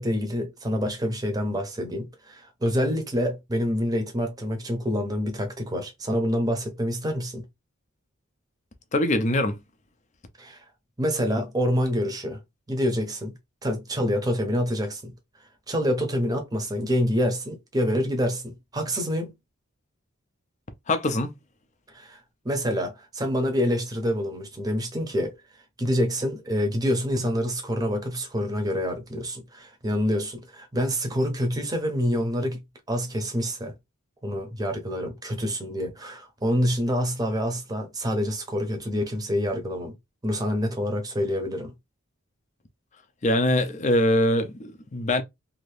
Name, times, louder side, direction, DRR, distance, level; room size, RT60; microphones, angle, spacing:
voice 1, 0.0-7.4 10.4-10.6 11.0-12.4 12.7-13.3 13.6-15.1 15.7-19.3 21.9-22.2 22.4-25.4 25.8-32.6 32.9-33.7 34.2-39.9 40.2-41.7, equal, 15° right, 0.7 m, -27 dB
voice 2, 8.9-9.6 20.9-21.3 43.2-45.2, left 1 dB, 35° left, 0.5 m, -23 dB
2.8 x 2.6 x 3.2 m
head